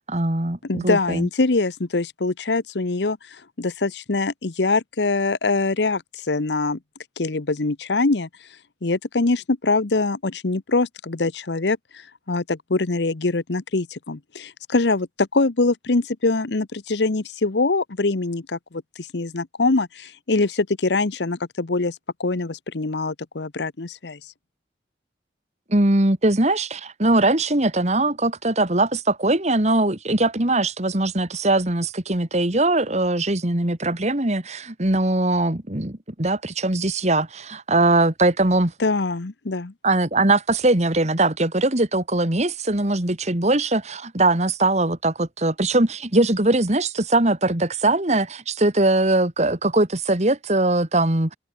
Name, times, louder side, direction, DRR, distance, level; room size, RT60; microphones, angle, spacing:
voice 1, 0.1-1.3 25.7-38.7 39.8-51.3, right 2 dB, 40° right, 2.2 m, -21 dB
voice 2, 0.6-6.8 7.2-8.3 8.8-11.8 12.3-24.2 38.8-39.7, left 3 dB, 75° left, 1.0 m, -23 dB
head